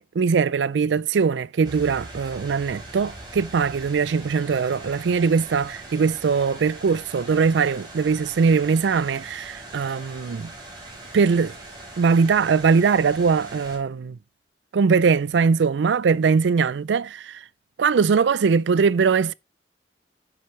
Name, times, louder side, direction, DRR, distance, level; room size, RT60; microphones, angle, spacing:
voice 1, 0.0-10.5 11.1-11.5 12.0-14.2 14.7-17.4 17.8-19.3, right 5 dB, 90° right, 0.4 m, -21 dB
sound 1, 1.6-13.8, right 2 dB, 25° right, 4.9 m, -41 dB
10.5 x 7.3 x 3.2 m
head